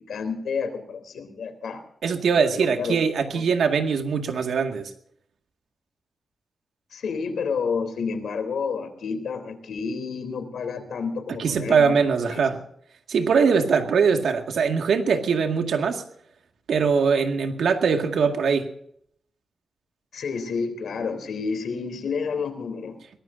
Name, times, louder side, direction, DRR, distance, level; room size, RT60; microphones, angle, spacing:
voice 1, 0.0-1.8 2.5-3.4 6.9-11.9 12.3-12.4 20.1-23.0, left 5 dB, 85° left, 7 dB, 3.4 m, -30 dB
voice 2, 2.0-4.9 11.4-12.6 13.1-16.0 16.7-18.7, right 5 dB, 90° right, 5 dB, 2.0 m, -22 dB
23.5 x 18.5 x 2.7 m, 0.68 s
wide cardioid pair, 130°, 0 cm